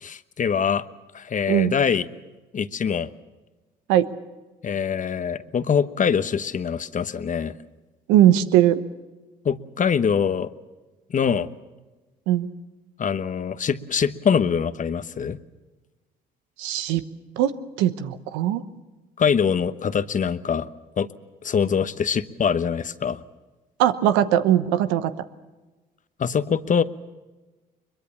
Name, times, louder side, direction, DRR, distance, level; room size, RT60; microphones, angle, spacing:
voice 1, 0.0-0.8 1.1-2.1 2.5-3.1 4.6-7.5 9.4-10.5 11.1-11.5 13.0-15.4 19.2-20.7 21.0-21.1 21.4-23.2 26.2-26.8, left 7 dB, 45° left, 13 dB, 1.1 m, -23 dB
voice 2, 8.1-8.8 12.3-12.5 16.6-17.0 17.4-18.6 23.8-25.1, right 11 dB, 90° right, 12 dB, 1.1 m, -20 dB
22.5 x 22.0 x 7.1 m, 1.2 s
supercardioid pair, 70°, 19 cm